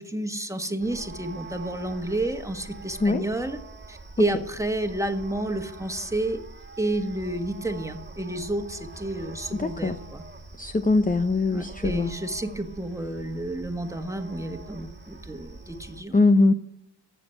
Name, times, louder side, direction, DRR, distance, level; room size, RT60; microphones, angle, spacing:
voice 1, 0.0-3.6 3.9-6.4 6.8-10.2 11.5-16.2, right 1 dB, 5° right, 7 dB, 1.6 m, -30 dB
sound 1, 0.8-16.0, right 3 dB, 25° right, 1.8 m, -43 dB
voice 2, 9.6-10.0 10.6-12.1 16.1-16.5, left 3 dB, 20° left, 8 dB, 0.7 m, -21 dB
15.0 x 7.1 x 9.1 m, 0.81 s
cardioid pair, 65°, 41 cm